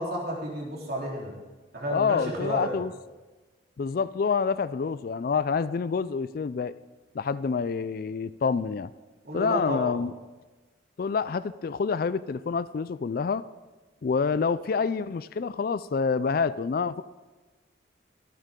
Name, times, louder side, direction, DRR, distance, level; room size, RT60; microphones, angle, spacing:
voice 1, 0.0-1.3 1.7-2.7 9.2-10.0, equal, 50° right, -3 dB, 3.6 m, -31 dB
voice 2, 1.9-2.9 3.8-6.7 7.1-8.9 9.3-10.1 11.0-13.4 14.0-17.0, left 5 dB, 45° left, 16 dB, 0.3 m, -27 dB
23.0 x 9.0 x 3.8 m, 1.2 s
head